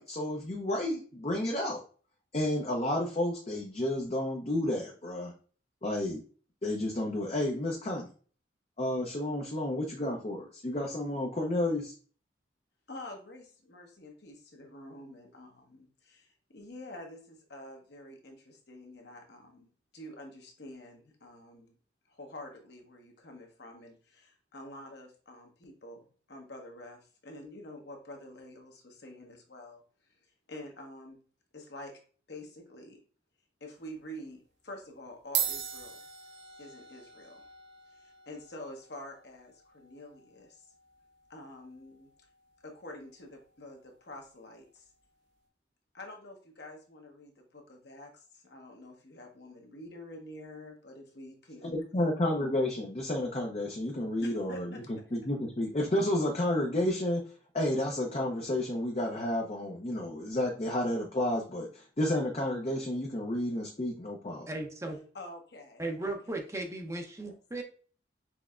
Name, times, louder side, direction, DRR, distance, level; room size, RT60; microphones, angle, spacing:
voice 1, 0.0-1.8 2.3-5.3 5.8-6.2 6.6-8.1 8.8-11.9 51.6-57.2 57.5-64.5, left 1 dB, 35° left, 0 dB, 0.6 m, -31 dB
voice 2, 12.9-21.7 22.1-29.8 30.5-31.2 31.5-32.0 32.3-33.0 33.6-36.0 36.6-37.4 38.0-40.7 41.3-42.1 42.6-44.9 45.9-51.8 54.2-55.0 65.1-66.4 67.2-67.3, left 1 dB, 60° left, 2 dB, 1.1 m, -48 dB
sound 1, 33.7-34.0 34.8-34.9 35.2-43.9, right 9 dB, 65° right, 0.7 m, -41 dB
voice 3, 64.5-65.0 65.8-67.6, right 2 dB, 15° right, 3 dB, 0.6 m, -36 dB
6.0 x 3.4 x 2.4 m, 0.41 s
head